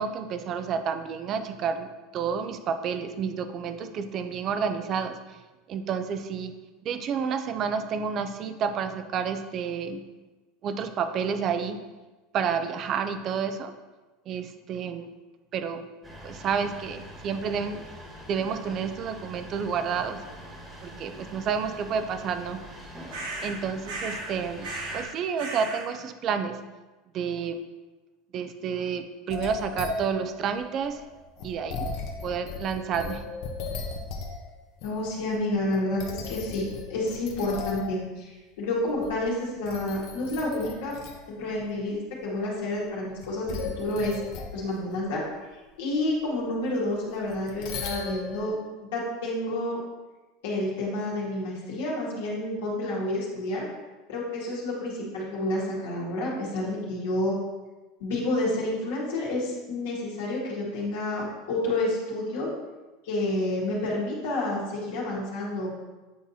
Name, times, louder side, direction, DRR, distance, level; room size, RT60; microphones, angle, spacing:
voice 1, 0.0-1.9 2.1-5.4 5.7-6.5 6.8-10.0 10.6-11.8 12.3-13.7 14.3-15.1 15.5-15.8 16.2-17.9 18.3-20.2 20.8-22.6 23.4-24.7 24.9-26.6 27.1-27.6 28.3-31.0 31.4-31.9 32.2-33.2, right 6 dB, 45° right, 9 dB, 0.5 m, -30 dB
sound 1, 16.0-25.0, equal, 20° right, 1.5 m, -44 dB
sound 2, 23.1-23.6 23.8-24.3 24.6-25.1 25.4-25.9, right 2 dB, 85° right, 1.3 m, -35 dB
sound 3, 29.3-34.5 34.8-35.4 35.7-38.0 38.9-39.3 39.6-41.3 41.7-41.8 43.2-44.6 47.3-48.5, left 4 dB, 65° left, 0.8 m, -36 dB
voice 2, 34.8-41.0 41.3-44.2 44.5-45.2 45.8-48.5 48.8-49.8 50.4-53.6 54.1-57.4 58.0-62.5 63.0-65.7, left 1 dB, 80° left, -5 dB, 1.8 m, -29 dB
8.5 x 4.0 x 2.8 m, 1.2 s
supercardioid pair, 105°, 0 cm